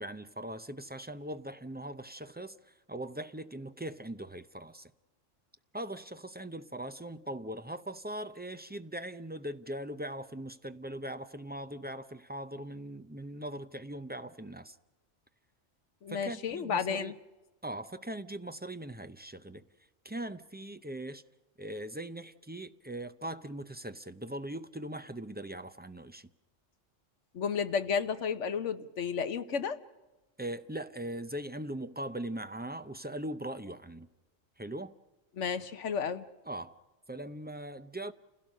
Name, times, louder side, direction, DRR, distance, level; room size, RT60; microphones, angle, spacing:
voice 1, 0.0-4.9 5.7-14.8 16.1-17.1 17.6-19.6 20.0-21.2 21.6-26.3 30.4-34.1 34.6-34.9 36.5-36.8 37.1-38.1, right 1 dB, 15° right, 0.3 m, -40 dB
voice 2, 16.0-17.1 27.3-29.8 35.4-36.2, left 6 dB, 75° left, 1.3 m, -32 dB
29.5 x 16.5 x 6.5 m
omnidirectional pair, 1.2 m